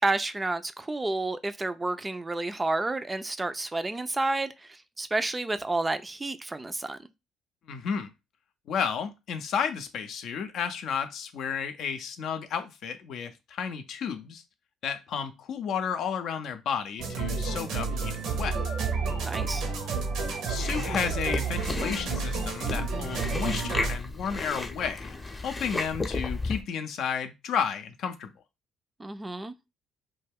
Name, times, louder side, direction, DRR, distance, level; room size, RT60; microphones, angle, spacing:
voice 1, 0.0-7.0 19.2-19.7 29.0-29.5, right 2 dB, 20° right, 0.3 m, -30 dB
voice 2, 7.7-8.1 8.7-14.4 14.8-18.6 20.5-25.1 25.4-28.3, left 7 dB, 65° left, 0.4 m, -32 dB
sound 1, 17.0-24.0, right 4 dB, 70° right, 0.6 m, -30 dB
Chewing mastication, 20.6-26.6, left 2 dB, 25° left, 0.7 m, -34 dB
2.2 x 2.2 x 3.4 m
hypercardioid pair, 55°, 0 cm